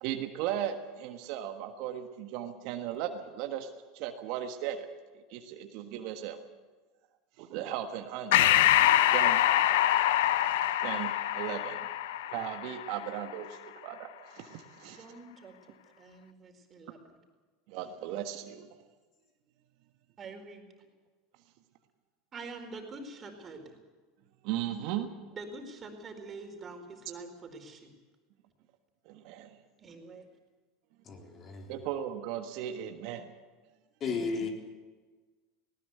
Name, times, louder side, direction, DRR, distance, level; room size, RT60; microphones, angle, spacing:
voice 1, 0.0-3.7 3.9-4.9 5.3-6.4 7.4-8.6 9.1-9.4 10.8-11.9 12.3-15.0 17.7-18.7 24.4-25.1 29.1-29.5 31.7-33.3, right 10 dB, 60° right, 1.5 m, -37 dB
Breathing, 8.3-13.2, left 13 dB, 70° left, 0.8 m, -25 dB
voice 2, 14.8-17.0 20.2-20.6 22.3-23.8 25.3-27.9 29.8-30.3 34.0-34.5, right 3 dB, 35° right, 4.4 m, -46 dB
voice 3, 31.1-31.7 34.0-34.5, left 4 dB, 40° left, 3.9 m, -34 dB
19.0 x 18.5 x 8.2 m
hypercardioid pair, 85°, 0 cm